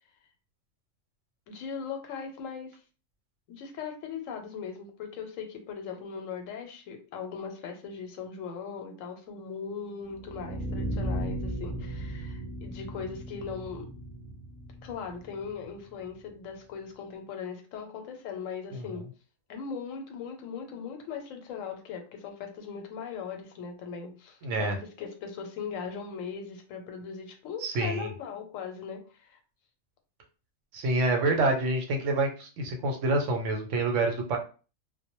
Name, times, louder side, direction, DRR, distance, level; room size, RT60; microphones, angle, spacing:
voice 1, 1.5-2.8 3.5-13.9 14.8-19.1 19.5-29.4 31.3-31.4, left 6 dB, 90° left, 4 dB, 1.0 m, -39 dB
sound 1, 10.1-16.1, right 1 dB, 25° left, 0.6 m, -36 dB
voice 2, 24.4-24.8 27.6-28.1 30.7-34.4, right 2 dB, 75° right, 3 dB, 0.9 m, -27 dB
2.2 x 2.0 x 2.9 m, 0.36 s
omnidirectional pair, 1.3 m